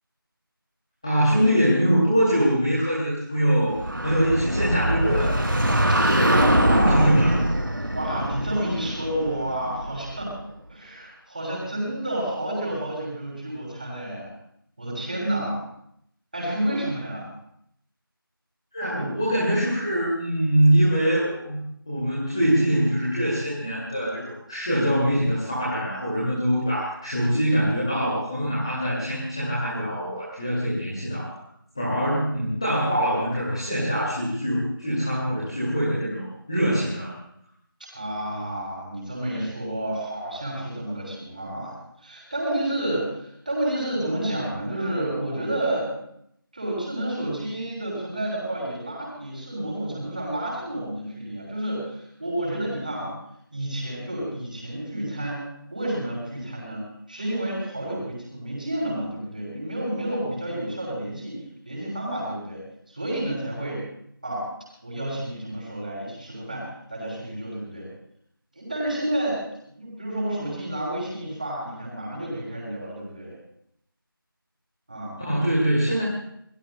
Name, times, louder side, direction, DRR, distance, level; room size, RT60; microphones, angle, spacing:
voice 1, 1.0-3.7 4.0-5.4 5.9-6.6 6.9-7.3 18.7-21.6 21.9-31.4 31.7-37.1 75.2-76.1, equal, 15° left, -8 dB, 2.2 m, -23 dB
sound 1, 3.6-10.2, right 1 dB, 65° right, 2.8 m, -23 dB
voice 2, 5.9-7.2 7.9-10.3 10.7-14.3 14.8-15.6 16.3-17.3 18.9-19.1 33.7-33.8 37.9-46.1 46.5-53.1 53.5-55.4 55.7-62.6 62.9-63.8 64.2-64.5 64.8-67.9 68.5-73.4 74.9-75.2, right 1 dB, 20° right, -4 dB, 6.2 m, -30 dB
27.0 x 22.0 x 2.2 m, 0.72 s
figure-of-eight pair, 180°, 12 cm